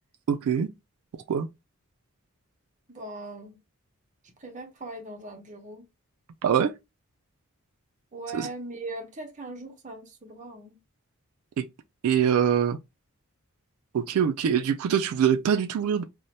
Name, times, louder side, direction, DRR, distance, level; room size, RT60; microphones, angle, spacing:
voice 1, 0.3-0.7 1.3-1.5 6.4-6.7 8.3-8.5 11.6-11.7 12.0-12.8 13.9-16.0, right 8 dB, 85° right, 0.3 m, -23 dB
voice 2, 2.9-3.6 4.4-5.9 8.1-10.8, right 2 dB, 35° right, 0.6 m, -40 dB
2.7 x 2.1 x 3.0 m
head